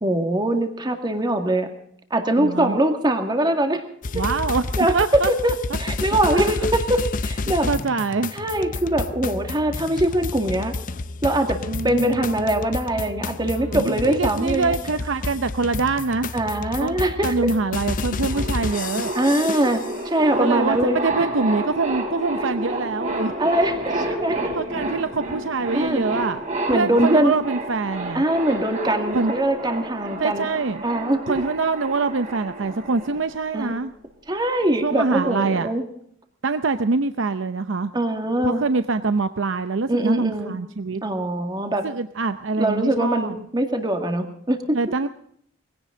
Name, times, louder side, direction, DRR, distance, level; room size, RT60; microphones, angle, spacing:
voice 1, 0.0-1.7 2.1-3.8 4.1-4.2 4.8-7.7 8.3-10.7 11.2-11.6 11.8-14.7 16.3-17.5 19.1-21.3 23.4-24.5 25.7-26.0 26.7-27.3 28.1-30.5 30.8-31.2 33.5-33.7 34.3-35.8 37.9-38.6 39.9-40.6 41.0-41.8 42.6-44.8, right 1 dB, 20° right, 5 dB, 2.0 m, -22 dB
voice 2, 2.4-2.8 4.1-4.6 4.9-5.3 6.3-6.5 7.7-8.3 11.7-12.3 13.5-16.3 16.8-17.0 17.2-19.1 20.4-23.3 24.5-26.4 26.7-28.2 29.1-29.3 30.2-30.8 31.3-33.9 34.8-35.7 36.4-37.9 38.4-41.0 41.8-43.4 44.7-45.1, right 4 dB, 70° right, 10 dB, 0.7 m, -24 dB
sound 1, 4.0-19.9, left 3 dB, 45° left, 0.6 m, -30 dB
sound 2, 17.9-33.8, right 1 dB, 35° right, 4.4 m, -30 dB
21.5 x 16.5 x 3.8 m, 0.65 s
head